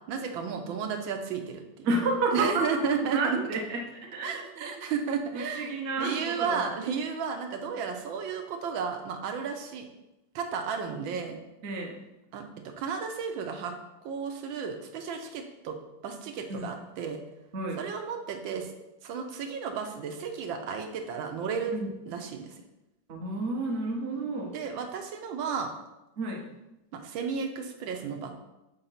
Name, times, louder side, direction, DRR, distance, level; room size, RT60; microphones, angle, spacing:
voice 1, 0.1-1.9 2.3-3.4 4.2-5.7 6.0-9.9 10.3-11.4 12.3-12.4 12.8-13.7 14.0-15.8 16.0-17.2 17.8-18.7 19.0-21.7 22.1-22.6 24.5-25.7 26.9-28.3, right 6 dB, 80° right, 4 dB, 1.4 m, -33 dB
voice 2, 1.8-4.5 5.3-6.6 11.6-12.0 16.5-16.7 17.5-17.8 21.7-21.9 23.1-24.6 26.2-26.5, right 2 dB, 45° right, 1 dB, 0.9 m, -31 dB
4.5 x 3.9 x 5.6 m, 0.96 s
omnidirectional pair, 2.1 m